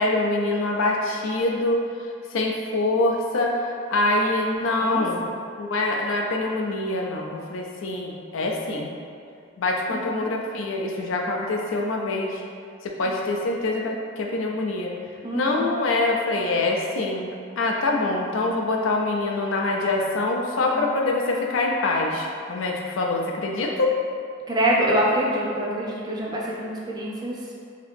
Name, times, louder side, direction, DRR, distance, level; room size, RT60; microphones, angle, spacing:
voice 1, 0.0-1.8 2.3-5.3 5.6-8.9 9.6-12.4 12.8-14.9 15.3-17.3 17.6-24.0, left 2 dB, 80° left, 0 dB, 0.4 m, -25 dB
voice 2, 4.8-5.3 9.9-10.3 13.0-13.1 15.2-15.7 20.6-20.8 24.5-27.5, right 1 dB, 20° right, -4 dB, 0.5 m, -26 dB
2.9 x 2.7 x 3.4 m, 2.4 s
head